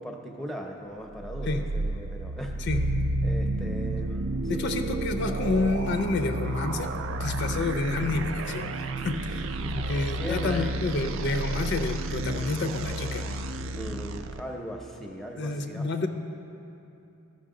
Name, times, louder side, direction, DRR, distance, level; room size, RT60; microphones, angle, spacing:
voice 1, 0.0-2.5 3.2-4.8 9.6-11.2 13.8-15.9, equal, ahead, 2 dB, 0.6 m, -38 dB
sound 1, 1.1-14.4, right 2 dB, 65° right, 0.4 m, -31 dB
voice 2, 4.5-6.9 7.2-13.4 15.4-16.1, left 3 dB, 55° left, 7 dB, 0.5 m, -29 dB
13.5 x 5.6 x 3.7 m, 2.8 s
head